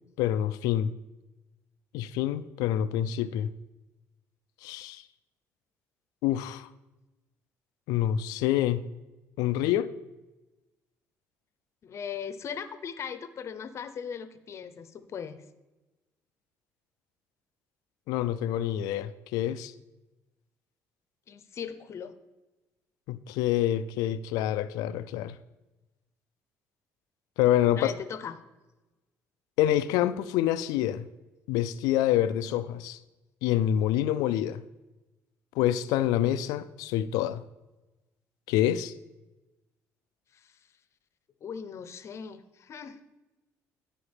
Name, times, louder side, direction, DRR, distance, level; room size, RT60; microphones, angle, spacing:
voice 1, 0.2-0.9 1.9-3.5 4.6-5.0 6.2-6.7 7.9-8.8 9.4-9.9 18.1-19.7 23.1-25.4 27.4-27.9 29.6-31.1 31.5-33.0 33.4-34.6 35.6-37.4 38.5-38.9, left 12 dB, 90° left, 0.4 m, -27 dB
voice 2, 11.8-15.4 21.3-22.1 27.7-28.4 40.3-40.5 41.4-43.0, left 7 dB, 50° left, 0.7 m, -39 dB
14.0 x 4.9 x 3.4 m
cardioid pair, 90°, 6 cm